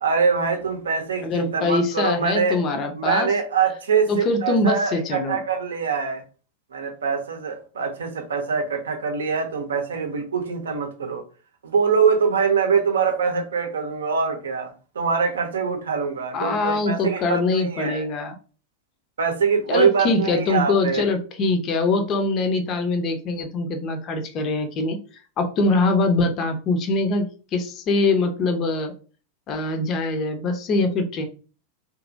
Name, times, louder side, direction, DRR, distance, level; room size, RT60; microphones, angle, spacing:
voice 1, 0.0-2.6 2.9-4.1 4.4-6.2 6.7-11.2 11.6-18.0 19.2-21.0, right 6 dB, 65° right, 0.6 m, -23 dB
voice 2, 1.2-3.3 4.1-5.4 16.3-18.4 19.7-25.0 25.4-28.9 29.5-31.3, left 3 dB, 35° left, 0.5 m, -23 dB
2.9 x 2.5 x 2.5 m
figure-of-eight pair, 90°, 0 cm